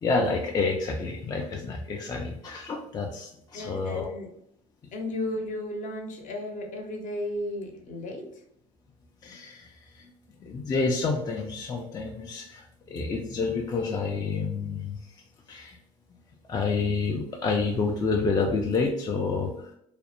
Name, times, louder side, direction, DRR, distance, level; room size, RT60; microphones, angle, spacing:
voice 1, 0.0-4.1 9.2-10.1 10.4-15.0 15.5-15.8 16.5-19.7, left 4 dB, 25° left, 1 dB, 0.4 m, -29 dB
voice 2, 3.5-4.3 4.9-8.2, left 1 dB, 45° left, 2 dB, 0.7 m, -34 dB
2.4 x 2.0 x 2.9 m, 0.71 s
supercardioid pair, 85°, 17 cm